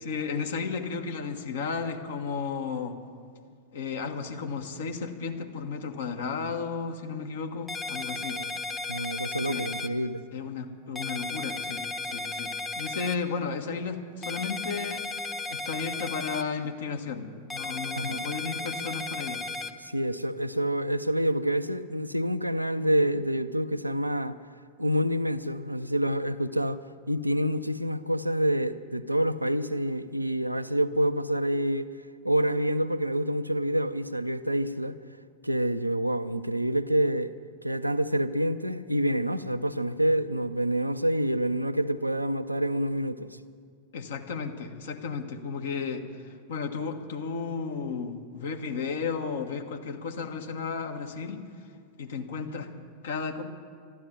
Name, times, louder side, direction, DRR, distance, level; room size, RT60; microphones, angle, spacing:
voice 1, 0.0-3.0 3.7-8.4 9.5-9.7 10.3-15.1 15.5-19.4 43.9-51.4 52.0-52.7 53.0-53.4, left 5 dB, 60° left, 1.4 m, -34 dB
sound 1, 7.7-9.9 11.0-13.2 14.2-16.4 17.5-19.7, left 3 dB, 10° left, 0.9 m, -34 dB
voice 2, 8.9-10.2 17.9-18.3 19.8-24.4 24.8-26.8 27.1-31.9 32.2-35.0 35.4-37.3 37.6-43.4, right 1 dB, 90° right, 0.5 m, -27 dB
12.5 x 12.5 x 9.3 m
figure-of-eight pair, 90°, 0 cm